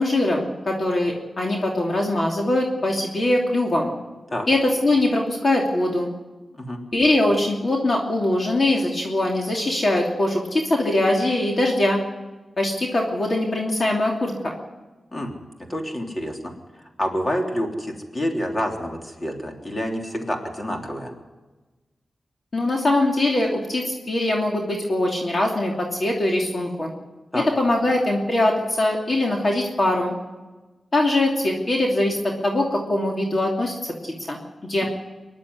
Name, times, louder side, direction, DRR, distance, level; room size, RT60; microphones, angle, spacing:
voice 1, 0.0-3.9 4.5-6.1 6.9-12.0 12.6-14.5 22.5-26.9 27.6-30.1 30.9-34.8, left 1 dB, 45° left, -1 dB, 2.9 m, -22 dB
voice 2, 15.7-16.5 16.8-21.1 27.3-27.5, equal, 25° left, 1 dB, 3.4 m, -28 dB
24.0 x 11.5 x 9.6 m, 1.2 s
wide cardioid pair, 85°, 0 cm